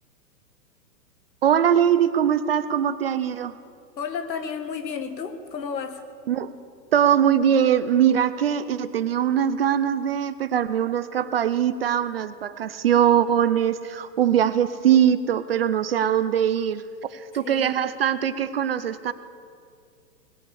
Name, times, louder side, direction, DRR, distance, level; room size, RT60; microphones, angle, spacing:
voice 1, 1.4-3.5 6.3-6.5 6.9-16.8 17.1-19.1, right 9 dB, 40° right, 14 dB, 0.4 m, -22 dB
voice 2, 4.0-6.0 17.4-17.7, left 6 dB, 90° left, 9 dB, 1.6 m, -32 dB
19.0 x 6.8 x 8.3 m, 2.3 s
hypercardioid pair, 140°, 49 cm